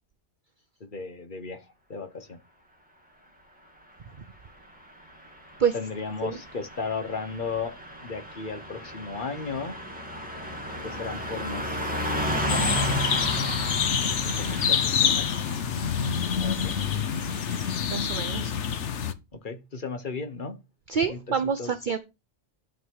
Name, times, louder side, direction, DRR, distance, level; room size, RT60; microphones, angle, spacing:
voice 1, 0.8-1.6 1.9-2.4 5.7-9.8 10.8-12.7 14.0-15.4 16.4-16.8 19.3-20.6 21.1-21.7, left 4 dB, 45° left, 1.4 m, -35 dB
Car passing by / Truck, 5.3-18.3, equal, 5° right, 2.8 m, -34 dB
sound 1, 12.5-19.1, left 7 dB, 75° left, 1.1 m, -27 dB
voice 2, 17.9-18.6 20.9-22.0, right 6 dB, 45° right, 0.9 m, -27 dB
10.0 x 6.3 x 4.8 m
omnidirectional pair, 1.2 m